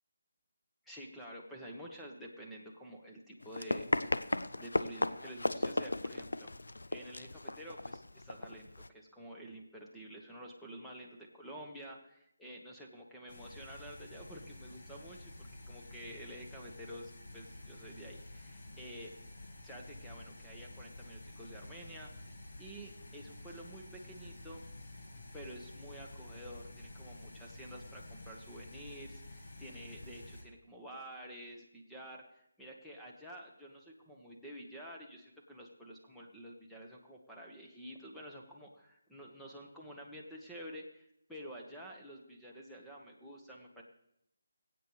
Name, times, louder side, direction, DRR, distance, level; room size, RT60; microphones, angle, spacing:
voice 1, 0.8-4.3 4.6-15.3 15.7-19.1 19.6-22.3 22.6-24.6 25.3-43.8, equal, 5° left, -3 dB, 1.3 m, -50 dB
Run, 3.4-8.9, left 2 dB, 85° left, 0.5 m, -36 dB
sound 1, 13.3-30.4, left 1 dB, 50° left, 2.0 m, -50 dB
23.0 x 8.5 x 3.3 m, 0.76 s
figure-of-eight pair, 160°, 0 cm